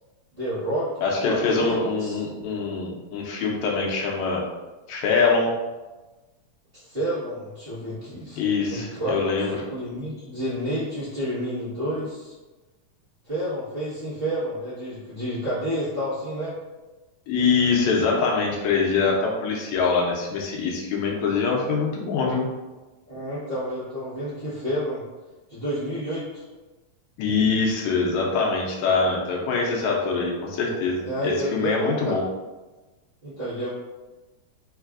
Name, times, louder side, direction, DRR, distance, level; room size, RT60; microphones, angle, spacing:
voice 1, 0.3-2.2 6.7-8.4 8.7-9.3 9.7-12.3 13.2-16.5 23.1-25.0 25.5-26.4 31.0-32.2 33.2-33.7, equal, 80° right, -13 dB, 0.5 m, -30 dB
voice 2, 1.0-4.4 4.9-5.5 8.4-9.6 17.3-22.5 27.2-32.2, left 4 dB, 80° left, -1 dB, 1.7 m, -24 dB
4.6 x 3.2 x 2.4 m, 1.2 s
omnidirectional pair, 3.7 m